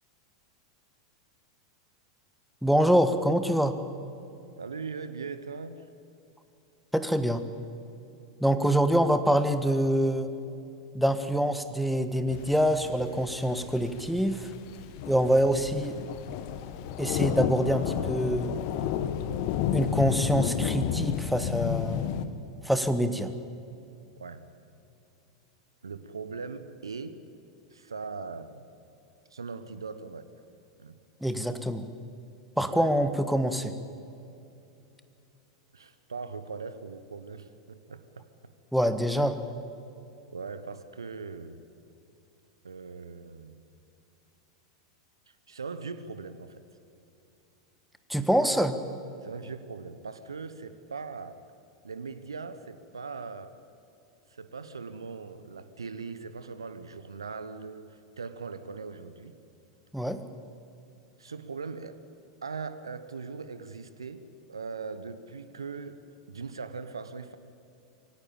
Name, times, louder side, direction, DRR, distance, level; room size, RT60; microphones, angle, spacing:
voice 1, 2.6-3.8 6.9-7.4 8.4-10.3 10.9-14.5 15.1-16.0 17.0-18.5 19.7-22.1 22.6-23.3 31.2-31.9 32.6-33.7 38.7-39.4 48.1-48.8 59.9-60.2, equal, ahead, 10 dB, 1.5 m, -25 dB
voice 2, 4.6-5.8 8.5-8.9 24.2-24.5 25.8-27.2 27.7-28.7 29.3-30.3 30.8-31.0 32.7-32.9 35.7-38.3 39.1-39.4 40.3-41.6 42.6-43.6 45.5-46.6 49.2-51.4 51.8-53.5 54.3-59.3 61.2-62.0 62.4-66.0 66.3-67.4, right 4 dB, 80° right, 12 dB, 1.2 m, -40 dB
sound 1, 12.3-22.3, left 10 dB, 50° left, 1.4 m, -32 dB
23.5 x 17.0 x 9.0 m, 2.7 s
figure-of-eight pair, 90°, 2 cm